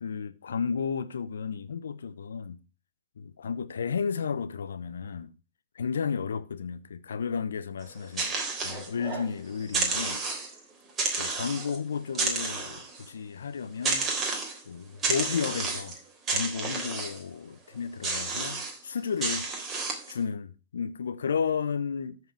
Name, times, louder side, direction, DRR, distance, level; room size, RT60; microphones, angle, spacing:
voice 1, 0.0-2.6 3.2-5.3 5.7-8.3 8.6-10.2 11.2-14.1 14.7-16.0 16.3-19.5 20.1-22.2, left 6 dB, 75° left, 0.9 m, -33 dB
sound 1, 7.8-9.3 9.6-10.6 11.0-11.8 12.1-13.1 13.8-14.6 15.0-16.0 16.3-17.2 18.0-18.8 19.2-20.1, right 3 dB, 25° right, 3.4 m, -31 dB
14.0 x 4.9 x 4.7 m
figure-of-eight pair, 105°, 0 cm